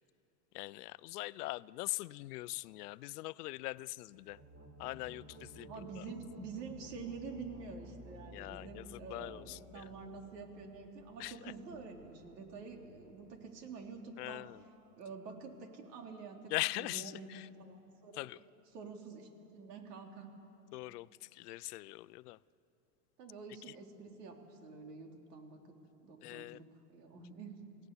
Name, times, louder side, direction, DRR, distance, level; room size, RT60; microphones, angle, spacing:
voice 1, 0.5-4.4 4.8-6.0 8.3-9.9 11.2-11.5 14.2-14.6 16.5-17.5 18.1-18.4 20.7-22.4 23.7-23.8 26.2-26.6, left 19 dB, 75° left, 20 dB, 0.6 m, -42 dB
sound 1, 4.1-14.7, right 1 dB, 25° right, 5.0 m, -56 dB
voice 2, 5.7-14.5 15.0-18.3 18.7-20.3 23.2-27.6, right 4 dB, 80° right, 2 dB, 3.7 m, -48 dB
22.0 x 17.0 x 9.8 m, 3.0 s
supercardioid pair, 125°, 47 cm